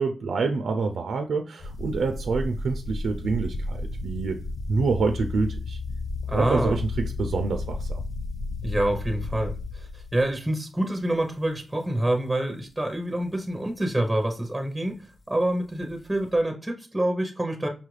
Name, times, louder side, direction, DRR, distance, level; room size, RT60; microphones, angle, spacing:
voice 1, 0.0-4.4 4.7-5.8 6.3-6.9 7.2-8.0, right 4 dB, 80° right, 0.3 m, -27 dB
sound 1, 1.6-10.4 11.1-11.5 12.1-12.2 15.7-16.4, left 3 dB, 55° left, 0.4 m, -33 dB
voice 2, 6.3-6.8 8.6-17.7, right 1 dB, 5° right, 0.7 m, -27 dB
5.4 x 2.4 x 3.1 m
cardioid pair, 80°, 0 cm